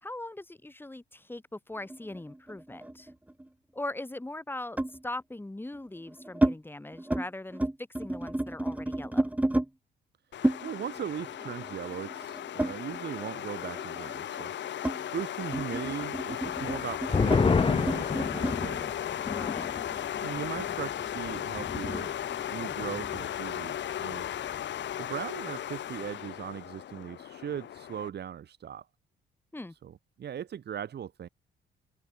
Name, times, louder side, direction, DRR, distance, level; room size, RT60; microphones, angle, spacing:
voice 1, 0.0-3.1 3.7-7.6 8.0-9.3 19.3-19.7 29.5-29.7, left 2 dB, 10° left, 3.1 m, -40 dB
sound 1, 1.9-3.5 4.8-5.0 5.8-6.6 6.9-7.3 7.5-9.7 10.4-13.3 13.6-18.6, right 1 dB, 5° right, 1.5 m, -31 dB
sound 2, 10.3-28.1, left 11 dB, 65° left, 1.9 m, -36 dB
voice 2, 10.6-14.5 15.1-19.1 20.2-22.1 22.5-24.3 25.0-28.9 29.8-31.3, right 9 dB, 55° right, 2.0 m, -39 dB
sound 3, 16.5-23.5 23.8-23.9 24.2-24.7, left 5 dB, 25° left, 1.1 m, -31 dB
cardioid pair, 90°, 20 cm